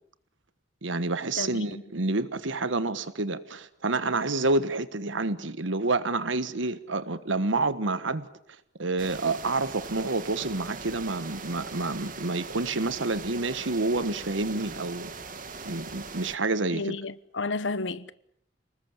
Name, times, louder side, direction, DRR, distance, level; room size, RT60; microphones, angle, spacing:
voice 1, 0.8-8.3 8.8-15.1 15.6-16.9, right 3 dB, 85° right, 1.4 m, -28 dB
voice 2, 1.4-1.8 16.7-18.1, left 3 dB, 75° left, 1.1 m, -32 dB
sound 1, 6.9-7.2 7.6-7.8 8.1-10.0 10.7-11.0 11.3-13.1 13.6-14.7, right 1 dB, 10° right, 5.5 m, -54 dB
sound 2, 9.0-16.4, right 4 dB, 45° right, 2.0 m, -41 dB
29.0 x 20.0 x 9.0 m
head